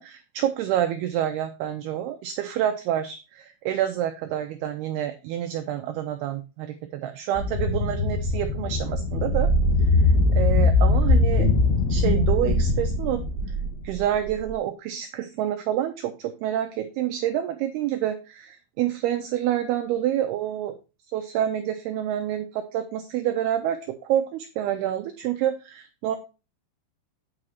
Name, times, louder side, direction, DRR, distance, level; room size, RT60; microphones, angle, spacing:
voice 1, 0.0-6.7 7.0-9.5 10.0-10.1 10.4-11.5 11.9-13.2 13.8-20.7 21.1-23.8 24.0-26.2, right 11 dB, 85° right, 6 dB, 2.2 m, -27 dB
sound 1, 7.4-14.5, left 2 dB, 65° left, 3.1 m, -21 dB
8.5 x 5.0 x 4.3 m, 0.30 s
omnidirectional pair, 5.3 m